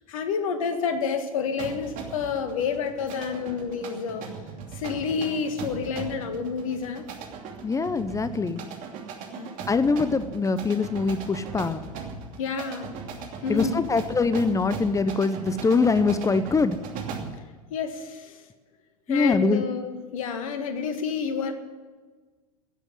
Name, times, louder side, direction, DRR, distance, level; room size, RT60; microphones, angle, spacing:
voice 1, 0.1-4.3 4.7-7.1 9.3-9.6 12.4-13.0 13.4-13.9 17.7-18.4 19.1-21.5, left 5 dB, 65° left, 8 dB, 1.8 m, -29 dB
sound 1, 1.6-17.4, right 5 dB, 45° right, 2.7 m, -39 dB
voice 2, 7.6-8.6 9.7-11.8 13.5-16.8 19.1-19.6, left 4 dB, 15° left, 13 dB, 0.8 m, -23 dB
16.5 x 8.1 x 9.9 m, 1.4 s
figure-of-eight pair, 80°, 19 cm